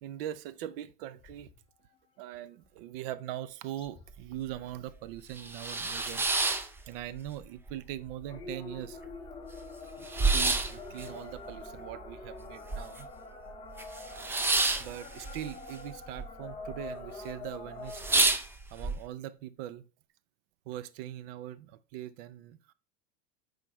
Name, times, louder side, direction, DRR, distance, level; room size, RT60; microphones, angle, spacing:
voice 1, 0.0-1.5 2.2-6.3 6.9-9.0 10.0-10.1 10.3-13.1 14.8-18.1 18.7-19.9 20.7-22.7, right 12 dB, 70° right, 0.6 m, -41 dB
sound 1, 1.2-1.6 2.6-2.7 3.8-4.2 4.4-4.8 5.5-5.7 6.1-6.2 6.9-7.0 8.2-18.3, left 3 dB, 15° left, 1.0 m, -45 dB
sound 2, 4.1-4.2 4.6-4.7 5.2-7.4 7.7-8.4 8.8-8.9 9.0-13.2 13.5-16.3 16.5-17.1 17.4-17.5 17.8-18.9, right 3 dB, 10° right, 0.4 m, -29 dB
7.6 x 4.9 x 3.1 m
supercardioid pair, 150°, 29 cm